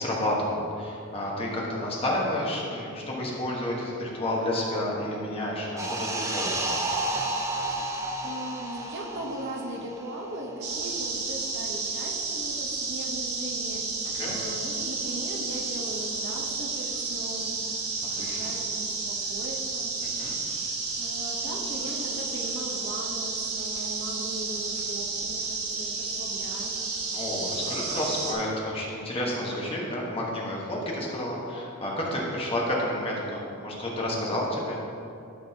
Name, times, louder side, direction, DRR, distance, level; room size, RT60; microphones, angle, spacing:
voice 1, 0.0-6.6 14.1-14.4 18.2-18.5 20.0-20.3 27.1-34.8, left 1 dB, 25° left, -3 dB, 1.3 m, -30 dB
sound 1, 5.8-10.8 11.1-11.3, right 2 dB, 15° right, 0.5 m, -31 dB
voice 2, 7.6-17.6 18.2-19.9 21.0-26.8, right 1 dB, 55° right, 1 dB, 0.9 m, -39 dB
sound 2, 10.6-28.3, right 4 dB, 90° right, 1.4 m, -31 dB
13.0 x 5.3 x 2.9 m, 2.7 s
head